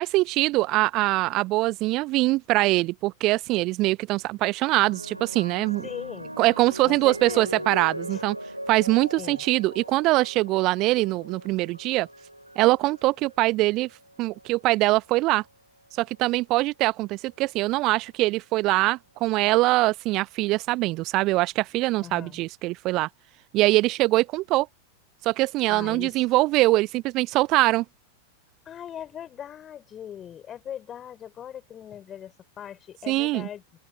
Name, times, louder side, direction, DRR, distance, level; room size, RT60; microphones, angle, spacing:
voice 1, 0.0-5.8 6.4-8.4 8.7-12.1 12.6-13.9 14.2-15.4 15.9-23.1 23.5-24.7 25.2-27.8 33.1-33.5, right 19 dB, 40° right, 0.8 m, -23 dB
sound 1, 4.7-13.3 14.2-14.6, right 1 dB, 90° right, 7.4 m, -39 dB
voice 2, 5.8-6.4 6.8-7.6 8.1-8.2 9.2-9.4 22.0-22.4 25.7-26.2 28.6-33.6, left 9 dB, 25° left, 5.2 m, -40 dB
figure-of-eight pair, 90°, 0 cm